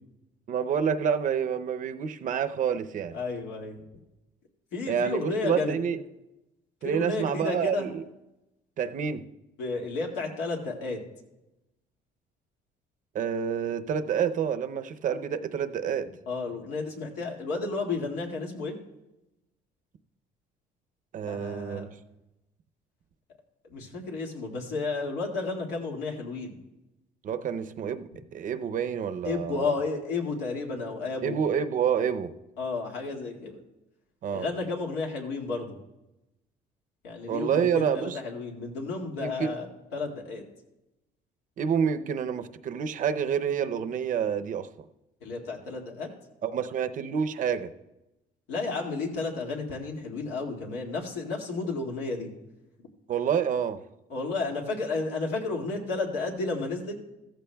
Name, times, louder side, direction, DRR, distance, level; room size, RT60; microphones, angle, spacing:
voice 1, 0.5-3.1 4.9-6.0 6.8-8.0 8.8-9.2 13.1-16.1 21.1-21.9 27.2-29.7 31.2-32.3 34.2-34.5 37.3-38.2 39.2-39.5 41.6-44.7 46.4-47.7 53.1-53.8, right 7 dB, 50° right, 10 dB, 0.6 m, -28 dB
voice 2, 3.1-3.8 4.7-5.8 6.8-7.9 9.6-11.0 16.3-18.7 21.3-21.9 23.7-26.6 29.2-31.4 32.6-33.6 34.3-35.8 37.0-40.5 45.2-46.1 48.5-52.3 52.8-52.9 54.1-57.0, left 3 dB, 90° left, 0 dB, 2.1 m, -32 dB
15.0 x 14.0 x 2.3 m, 0.97 s
cardioid pair, 110°, 17 cm